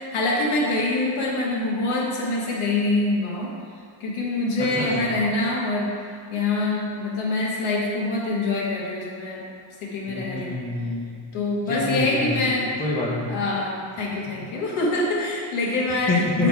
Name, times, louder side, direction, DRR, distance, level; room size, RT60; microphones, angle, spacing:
voice 1, 0.0-3.5 4.0-5.9 6.3-9.5 9.8-10.6 11.3-12.7 13.3-16.1 16.4-16.5, left 2 dB, 80° left, -4 dB, 1.8 m, -25 dB
voice 2, 4.8-5.1 10.1-11.2 11.7-12.5 12.8-13.3 16.1-16.5, left 2 dB, 15° left, -5 dB, 1.1 m, -26 dB
9.0 x 4.0 x 4.7 m, 2.1 s
cardioid pair, 150°, 49 cm